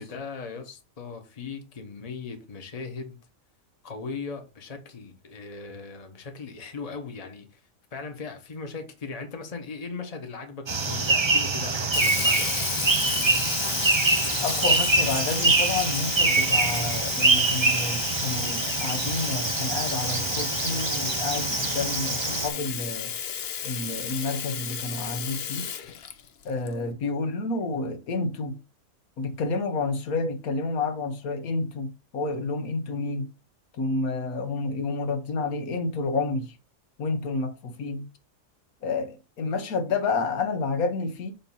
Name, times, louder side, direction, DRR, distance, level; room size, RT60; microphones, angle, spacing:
voice 1, 0.0-3.2 3.8-7.6 7.9-12.5, left 4 dB, 30° left, 1.1 m, -38 dB
sound 1, 10.7-22.5, right 3 dB, 35° right, 0.4 m, -25 dB
Sink (filling or washing), 11.9-26.7, left 8 dB, 55° left, 0.8 m, -32 dB
voice 2, 14.4-23.1 23.6-25.7 26.4-28.6 29.2-33.3 33.8-36.5 37.0-38.1 38.8-41.3, left 3 dB, 80° left, 1.4 m, -30 dB
7.2 x 2.8 x 5.5 m
omnidirectional pair, 1.5 m